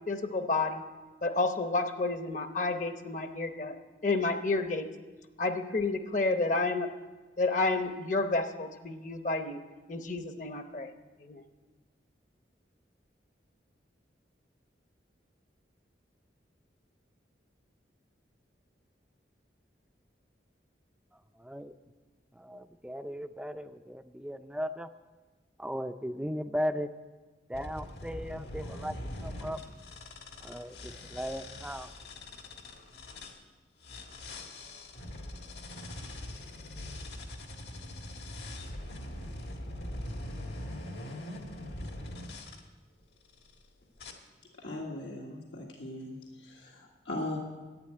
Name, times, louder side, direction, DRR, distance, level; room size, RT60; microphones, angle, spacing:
voice 1, 0.1-0.8 1.2-3.8 4.0-4.9 5.4-6.9 7.4-9.6 9.9-10.9 11.2-11.4, left 3 dB, 40° left, 8 dB, 0.8 m, -30 dB
voice 2, 21.4-21.7 22.4-24.9 25.6-26.9 27.5-28.9 29.2-29.6 30.4-31.9, equal, 5° right, 10 dB, 0.4 m, -37 dB
sound 1, 27.5-33.4 33.8-42.6 43.2-43.6 44.0-44.1, left 1 dB, 70° left, 1.5 m, -42 dB
voice 3, 44.6-47.4, left 1 dB, 90° left, -2 dB, 1.7 m, -39 dB
11.5 x 9.1 x 8.9 m, 1.3 s
head